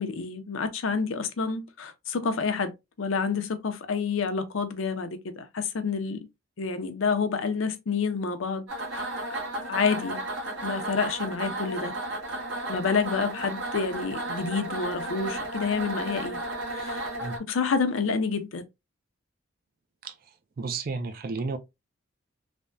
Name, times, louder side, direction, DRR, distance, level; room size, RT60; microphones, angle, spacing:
voice 1, 0.0-2.7 3.0-6.3 6.6-8.7 8.9-9.0 9.7-10.2 10.6-11.9 12.7-16.4 16.7-17.0 17.5-18.6, left 5 dB, 75° left, 0.5 m, -28 dB
sound 1, 8.7-17.4, right 1 dB, 70° right, 1.4 m, -33 dB
voice 2, 20.6-21.6, right 4 dB, 45° right, 0.4 m, -32 dB
3.3 x 2.1 x 2.5 m
head